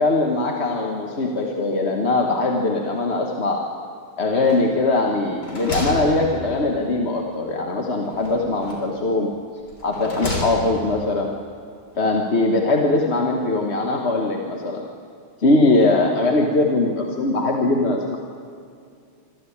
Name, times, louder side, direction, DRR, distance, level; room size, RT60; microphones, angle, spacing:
voice 1, 0.0-3.7 4.2-9.3 9.8-11.3 12.0-14.9 15.4-18.2, left 2 dB, 35° left, 1 dB, 1.4 m, -21 dB
sound 1, 4.4-4.9 5.3-6.9 8.1-9.0 9.7-10.9, left 2 dB, 55° left, 4.3 m, -31 dB
25.5 x 13.0 x 8.6 m, 2.4 s
omnidirectional pair, 2.2 m